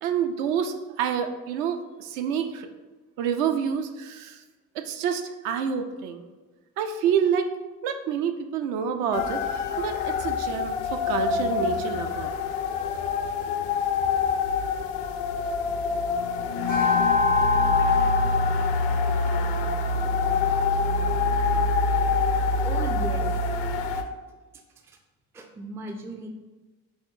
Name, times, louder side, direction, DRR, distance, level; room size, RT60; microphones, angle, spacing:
voice 1, 0.0-2.7 3.2-4.4 4.7-6.2 6.8-7.5 7.8-12.3, right 7 dB, 65° right, 7 dB, 0.5 m, -28 dB
sound 1, 9.1-24.0, left 4 dB, 60° left, 0.5 m, -25 dB
sound 2, 16.7-21.3, left 2 dB, 85° right, 1.1 m, -29 dB
voice 2, 22.5-23.5 23.9-24.0 24.8-25.0 25.3-26.3, right 2 dB, 5° right, 3 dB, 0.3 m, -37 dB
4.7 x 3.0 x 2.5 m, 1.2 s
figure-of-eight pair, 55°, 43 cm